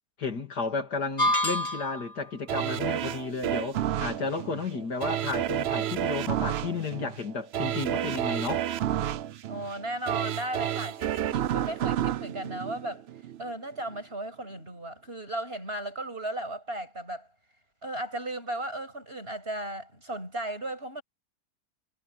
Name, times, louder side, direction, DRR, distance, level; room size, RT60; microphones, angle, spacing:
voice 1, 0.2-8.7, left 4 dB, 80° left, 3.2 m, -33 dB
sound 1, 1.2-2.2, left 1 dB, 25° left, 1.9 m, -26 dB
sound 2, 2.5-13.4 13.9-14.0, right 11 dB, 70° right, 0.6 m, -30 dB
voice 2, 9.5-13.0 13.4-17.3 17.8-21.0, right 1 dB, 35° right, 7.9 m, -35 dB
omnidirectional pair, 1.7 m